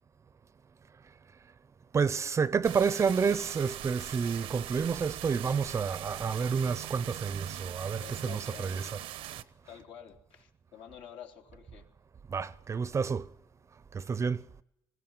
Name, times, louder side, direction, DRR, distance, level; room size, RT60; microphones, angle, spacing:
voice 1, 1.9-9.0 12.3-13.3 13.9-14.4, right 6 dB, 30° right, 0.7 m, -29 dB
Heavy rain getting stronger under a roof, 2.6-9.4, right 13 dB, 85° right, 1.0 m, -41 dB
voice 2, 8.0-9.1 9.6-11.9, left 9 dB, 70° left, 3.6 m, -49 dB
20.0 x 17.0 x 9.0 m
cardioid pair, 110°, 9 cm